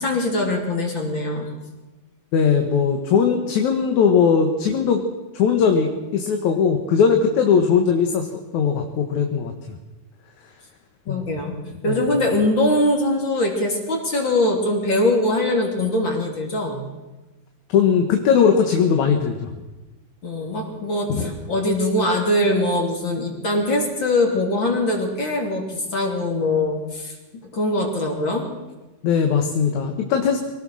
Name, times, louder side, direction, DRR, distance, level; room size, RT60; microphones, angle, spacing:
voice 1, 0.0-1.5 11.1-11.6 11.8-16.9 20.2-27.2 27.5-28.5, left 1 dB, 40° left, 1 dB, 3.6 m, -22 dB
voice 2, 2.3-5.0 5.3-9.8 11.1-11.2 11.9-12.1 17.7-19.5 21.1-21.3 29.0-30.5, left 6 dB, 70° left, 4 dB, 2.8 m, -19 dB
24.0 x 18.5 x 6.4 m, 1.1 s
omnidirectional pair, 3.6 m